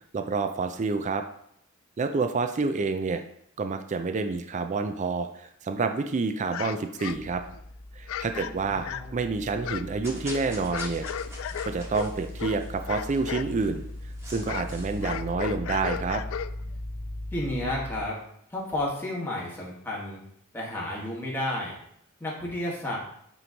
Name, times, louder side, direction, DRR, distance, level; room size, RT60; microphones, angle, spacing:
voice 1, 0.1-1.2 2.0-3.2 3.6-7.4 7.9-11.1 11.6-13.9 14.3-16.2, right 4 dB, 35° right, 7 dB, 0.4 m, -28 dB
sound 1, 6.5-7.6 8.1-9.2 9.6-13.5 13.8-16.8, left 9 dB, 65° left, 0.3 m, -36 dB
sound 2, 7.1-18.1, left 1 dB, 35° left, 0.8 m, -39 dB
voice 2, 8.3-9.4 17.3-18.2 18.5-20.2 20.5-21.7 22.2-23.0, left 1 dB, 10° left, -4 dB, 1.6 m, -32 dB
sound 3, 10.0-15.2, equal, 15° right, 1.4 m, -45 dB
9.1 x 3.1 x 3.9 m, 0.71 s
head